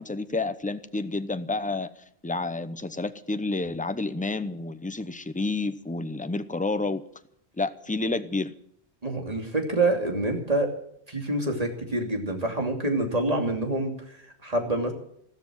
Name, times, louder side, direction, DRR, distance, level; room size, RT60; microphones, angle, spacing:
voice 1, 0.0-1.9 2.2-7.0 7.6-8.5, left 3 dB, 10° left, 11 dB, 0.7 m, -29 dB
voice 2, 9.0-10.7 11.1-14.9, right 2 dB, 35° right, 3 dB, 3.0 m, -27 dB
14.5 x 13.0 x 7.6 m, 0.69 s
omnidirectional pair, 1.1 m